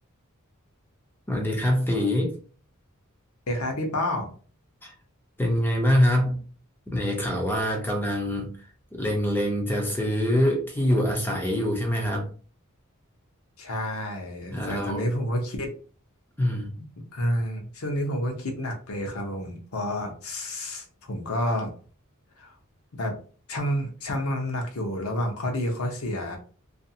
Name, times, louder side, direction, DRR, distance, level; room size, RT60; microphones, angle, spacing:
voice 1, 1.3-2.3 4.8-4.9 5.4-6.4 6.9-8.6 8.9-12.3 14.5-15.1 16.4-16.7, equal, 10° left, 1 dB, 0.5 m, -24 dB
voice 2, 3.5-4.3 13.6-15.7 17.0-21.7 22.4-22.5 23.0-23.2 23.5-26.4, left 1 dB, 80° left, 3 dB, 0.8 m, -29 dB
2.5 x 2.4 x 2.7 m, 0.40 s
head